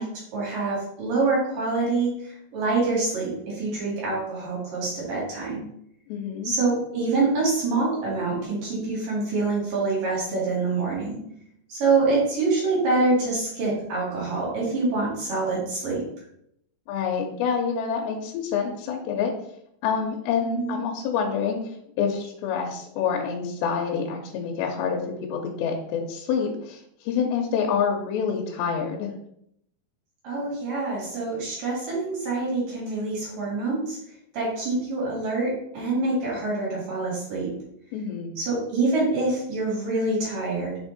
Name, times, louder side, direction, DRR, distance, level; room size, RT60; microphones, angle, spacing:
voice 1, 0.0-5.6 6.4-11.2 11.7-16.0 20.5-20.8 30.2-34.0 34.3-37.5 38.4-40.8, right 3 dB, 55° right, -5 dB, 3.6 m, -26 dB
voice 2, 6.1-6.5 16.9-19.3 19.8-21.6 22.0-25.0 25.3-29.1 37.9-38.4, left 6 dB, 85° left, 1 dB, 2.8 m, -27 dB
6.8 x 3.5 x 4.1 m, 0.74 s
omnidirectional pair, 5.1 m